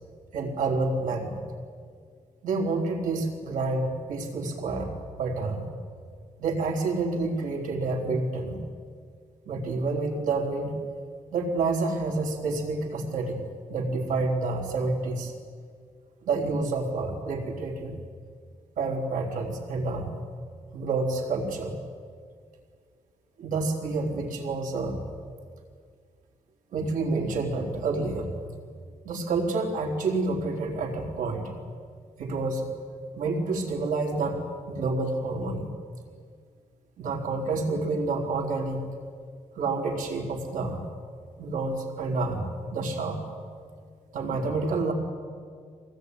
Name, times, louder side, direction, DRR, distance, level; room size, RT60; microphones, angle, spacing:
voice 1, 0.3-1.4 2.4-4.9 5.2-5.7 6.4-8.6 9.5-10.8 11.3-13.4 13.7-15.3 16.2-18.0 18.8-20.1 20.7-21.8 23.4-25.0 26.7-28.3 29.0-31.5 32.2-32.7 33.1-35.7 37.0-38.9 39.6-40.8 41.4-43.2 44.1-44.9, right 3 dB, 75° right, 0 dB, 4.0 m, -28 dB
23.5 x 18.5 x 9.5 m, 2.1 s
cardioid pair, 145°, 13 cm